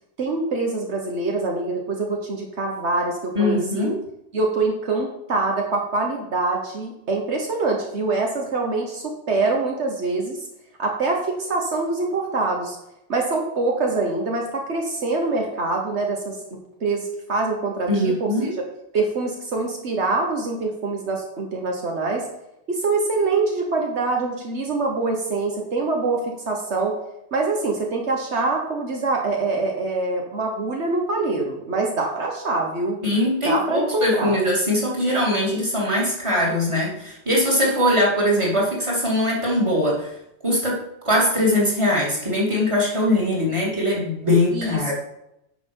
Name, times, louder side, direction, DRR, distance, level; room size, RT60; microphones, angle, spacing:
voice 1, 0.2-3.8 4.3-10.4 10.8-12.8 13.1-16.4 16.8-18.6 18.9-22.2 22.7-27.0 27.3-33.0 33.4-34.4 44.5-44.9, right 3 dB, 75° right, 1 dB, 1.5 m, -24 dB
voice 2, 3.3-4.0 17.9-18.5 33.0-40.1 40.4-40.8 41.0-44.9, left 1 dB, 25° right, -4 dB, 2.7 m, -21 dB
10.0 x 5.1 x 5.4 m, 0.84 s
omnidirectional pair, 1.2 m